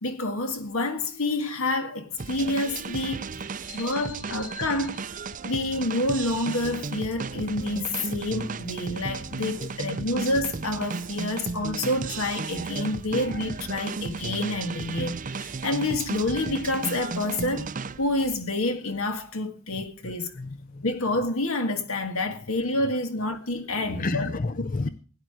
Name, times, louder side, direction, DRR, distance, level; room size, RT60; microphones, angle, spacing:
voice 1, 0.0-3.3 3.7-5.0 5.4-17.7 18.0-20.3 20.8-24.3 24.8-24.9, left 2 dB, 80° left, 1.8 m, -28 dB
sound 1, 2.2-18.3, right 4 dB, 40° right, 0.5 m, -34 dB
voice 2, 3.6-4.7 9.6-9.8 19.7-20.8 23.7-24.9, left 3 dB, 40° left, 0.6 m, -34 dB
16.5 x 10.0 x 4.8 m
head